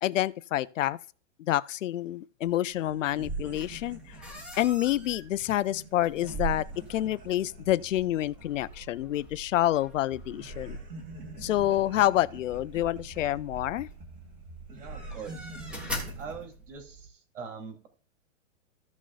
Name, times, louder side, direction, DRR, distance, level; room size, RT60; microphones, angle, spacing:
voice 1, 0.0-1.0 1.5-4.2 4.6-10.8 11.4-13.9, left 13 dB, 75° left, 0.6 m, -28 dB
sound 1, 2.5-2.6 2.8-9.8 10.1-16.5, right 4 dB, 20° right, 2.3 m, -42 dB
sound 2, 3.5-17.1, equal, 5° right, 1.2 m, -45 dB
voice 2, 14.7-15.5 16.2-17.9, right 6 dB, 70° right, 3.4 m, -42 dB
15.5 x 6.2 x 2.5 m
hypercardioid pair, 170°, 38 cm